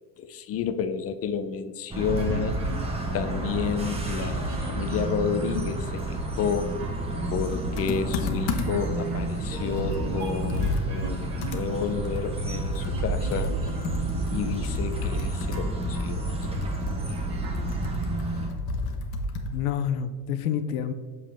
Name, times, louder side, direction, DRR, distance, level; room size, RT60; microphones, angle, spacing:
voice 1, 0.2-2.6 3.1-6.7 7.3-13.5 14.3-16.7, left 6 dB, 35° left, 11 dB, 0.5 m, -31 dB
sound 1, 1.9-18.5, right 2 dB, 15° right, 1.2 m, -31 dB
sound 2, 2.0-18.2, right 2 dB, 70° right, 1.8 m, -41 dB
Computer keyboard, 7.8-8.9 9.4-9.5 9.8-19.6, left 3 dB, 55° left, 1.1 m, -32 dB
voice 2, 19.5-20.9, left 8 dB, 75° left, 10 dB, 0.8 m, -28 dB
6.9 x 5.4 x 3.4 m, 1.5 s
supercardioid pair, 105°, 46 cm